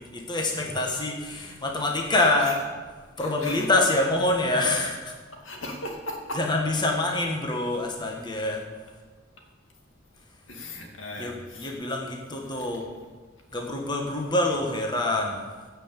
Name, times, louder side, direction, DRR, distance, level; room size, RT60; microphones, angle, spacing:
voice 1, 0.1-2.6 3.2-5.1 6.3-8.6 11.2-12.9 13.5-15.4, left 2 dB, 25° left, 1 dB, 1.5 m, -26 dB
voice 2, 3.2-3.7 5.4-6.4 10.5-11.8, left 1 dB, 75° left, 1 dB, 2.4 m, -37 dB
16.5 x 5.9 x 7.4 m, 1.4 s
head